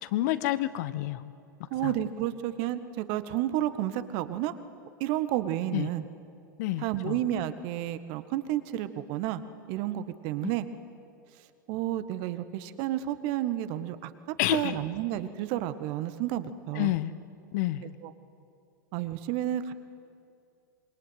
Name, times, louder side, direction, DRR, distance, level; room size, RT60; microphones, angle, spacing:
voice 1, 0.0-1.2 1.8-1.9 5.7-5.9 6.6-7.2 10.4-10.5 14.4-14.8 16.7-17.1 17.5-17.8, left 15 dB, 55° left, 14 dB, 1.3 m, -29 dB
voice 2, 1.7-4.5 5.0-6.0 6.8-9.4 9.7-10.7 11.7-16.9 18.0-18.1 18.9-19.7, right 13 dB, 50° right, 12 dB, 1.6 m, -31 dB
27.0 x 22.5 x 9.3 m, 2.5 s
figure-of-eight pair, 95°, 11 cm